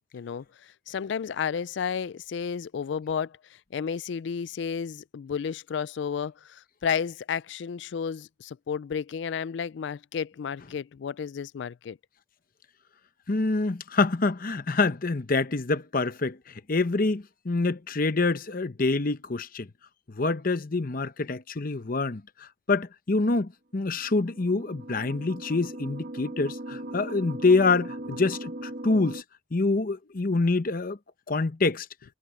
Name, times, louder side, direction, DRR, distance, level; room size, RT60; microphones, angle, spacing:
voice 1, 0.1-3.4 3.7-12.0, left 7 dB, 65° left, 0.3 m, -32 dB
voice 2, 13.3-19.7 20.1-29.2 29.5-31.0 31.3-31.9, left 3 dB, 45° left, 0.8 m, -26 dB
sound 1, 23.9-29.2, right 1 dB, 50° right, 1.9 m, -39 dB
head